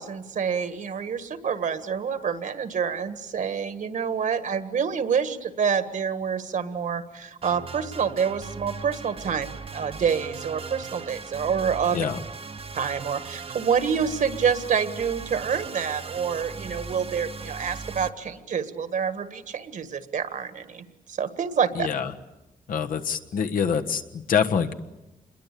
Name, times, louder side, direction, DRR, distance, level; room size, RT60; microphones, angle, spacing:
voice 1, 0.0-12.1 12.8-21.9, right 7 dB, 65° right, 10 dB, 1.8 m, -27 dB
sound 1, 7.4-18.1, right 5 dB, 40° right, 0.9 m, -38 dB
voice 2, 11.9-12.2 21.7-22.1 22.7-24.7, left 7 dB, 80° left, 6 dB, 1.4 m, -25 dB
27.5 x 22.0 x 8.5 m, 0.98 s
wide cardioid pair, 130°, 14 cm